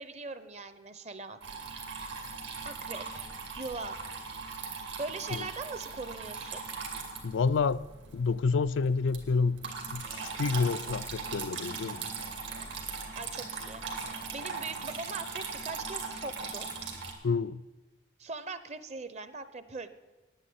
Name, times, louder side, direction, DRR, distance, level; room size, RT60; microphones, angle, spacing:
voice 1, 0.0-1.4 2.6-3.3 3.6-4.0 4.8-6.6 12.9-16.7 18.2-19.9, right 3 dB, 35° right, 0.8 m, -41 dB
Water tap faucet / Trickle dribble, 1.4-17.1, right 5 dB, 75° right, 2.5 m, -39 dB
voice 2, 7.2-7.8 8.1-9.6 9.9-12.0 17.2-17.6, left 4 dB, 85° left, 0.4 m, -28 dB
9.9 x 9.3 x 9.4 m
head